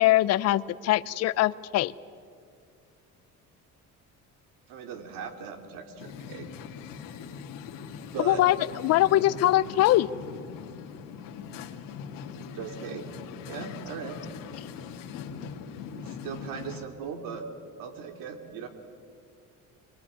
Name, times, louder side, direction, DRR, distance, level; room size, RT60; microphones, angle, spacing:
voice 1, 0.0-1.9 8.3-8.6 8.8-10.1, left 15 dB, 50° left, 17 dB, 0.6 m, -22 dB
voice 2, 4.7-6.5 8.0-8.4 12.5-13.0 13.4-14.2 15.9-17.4 17.8-18.7, right 7 dB, 90° right, 7 dB, 2.8 m, -38 dB
sound 1, 6.0-16.8, left 7 dB, 90° left, 2.1 m, -41 dB
25.0 x 21.5 x 9.4 m, 2.3 s
cardioid pair, 180°, 33 cm